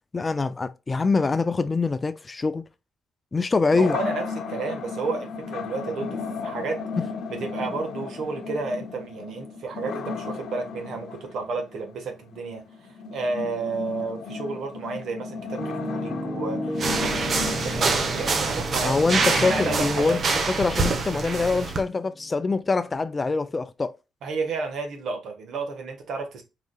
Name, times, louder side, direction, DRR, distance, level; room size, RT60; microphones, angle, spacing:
voice 1, 0.1-2.6 3.3-4.0 7.0-7.1 18.8-23.9, left 4 dB, 25° left, 0.4 m, -24 dB
sound 1, 3.7-21.5, left 5 dB, 70° left, 0.8 m, -35 dB
voice 2, 3.8-6.8 7.3-12.6 13.1-17.1 17.5-20.2 24.2-26.4, right 4 dB, 70° right, 1.4 m, -32 dB
Piano, 15.6-23.4, equal, 10° left, 0.9 m, -36 dB
sound 2, 16.8-21.8, right 4 dB, 50° right, 1.0 m, -25 dB
4.8 x 4.0 x 2.3 m
cardioid pair, 90°, 0 cm